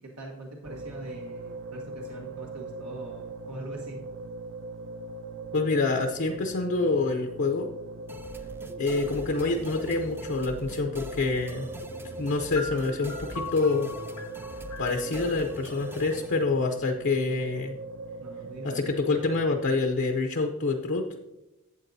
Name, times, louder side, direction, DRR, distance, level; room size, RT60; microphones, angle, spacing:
voice 1, 0.0-4.0 18.2-18.9, right 1 dB, 85° right, -1 dB, 1.3 m, -42 dB
sound 1, 0.6-19.8, right 2 dB, 60° right, 0.5 m, -40 dB
voice 2, 5.5-7.7 8.8-11.7 12.2-13.9 14.8-17.8 18.7-21.0, left 3 dB, 55° left, 4 dB, 0.6 m, -27 dB
sound 2, 8.1-16.4, equal, 10° right, 0.5 m, -44 dB
sound 3, 12.6-16.4, left 3 dB, 90° left, 0.9 m, -42 dB
12.0 x 8.2 x 2.7 m, 0.98 s
head